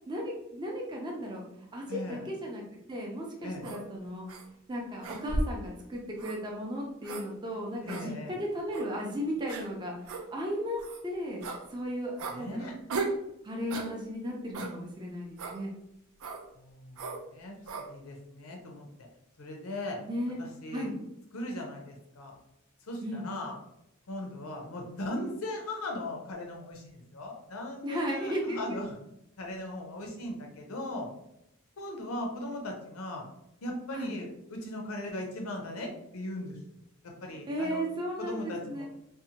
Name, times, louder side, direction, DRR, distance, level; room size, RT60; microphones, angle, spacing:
voice 1, 0.1-1.4 1.7-4.3 4.7-11.4 11.7-12.7 13.4-15.7 20.0-20.4 20.7-20.9 23.0-23.3 27.8-28.8 33.9-34.1 37.3-38.9, equal, 20° right, -1 dB, 0.4 m, -35 dB
voice 2, 1.9-2.3 3.4-3.7 7.8-8.4 12.3-12.8 16.6-17.6 17.9-18.9 19.4-20.0 20.4-20.9 21.3-22.4 22.9-23.6 24.1-29.0 29.4-31.1 31.8-33.2 33.6-36.6 37.2-37.9 38.2-38.9, left 1 dB, 85° left, 2 dB, 0.6 m, -38 dB
sound 1, 3.6-3.8 4.3-4.4 5.0-5.6 6.2-6.4 7.0-7.3 7.9-8.0 8.7-8.9 9.5-9.6 10.1-10.2 10.8-11.0 11.4-11.6 12.2-12.4 12.9-13.2 13.7-13.9 14.5-14.7 15.4-15.6 16.2-16.4 17.0-17.2 17.7-17.9, right 3 dB, 90° right, 0.4 m, -35 dB
2.6 x 2.1 x 2.7 m, 0.81 s
head